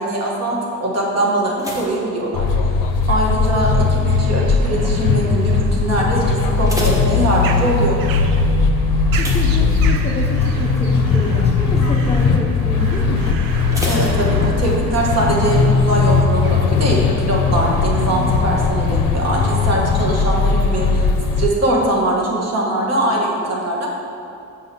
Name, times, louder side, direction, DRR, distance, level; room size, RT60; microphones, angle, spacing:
voice 1, 0.0-2.5 3.1-8.0 13.8-21.0 21.4-23.9, right 1 dB, 45° right, -3 dB, 1.1 m, -21 dB
sound 1, 1.6-3.1 3.3-3.8 4.4-4.8 5.1-5.2 5.6-5.7 6.3-7.9 9.1-10.3 10.6-10.9 11.3-11.4 13.7-14.9 15.2-15.3, equal, 10° right, 0.7 m, -31 dB
sound 2, 2.3-21.5, left 4 dB, 70° left, 0.5 m, -18 dB
sound 3, 4.1-16.9, right 6 dB, 75° right, 0.5 m, -36 dB
voice 2, 9.2-13.4, left 3 dB, 20° left, -3 dB, 0.4 m, -28 dB
6.9 x 5.7 x 2.7 m, 2.6 s
cardioid pair, 155°, 34 cm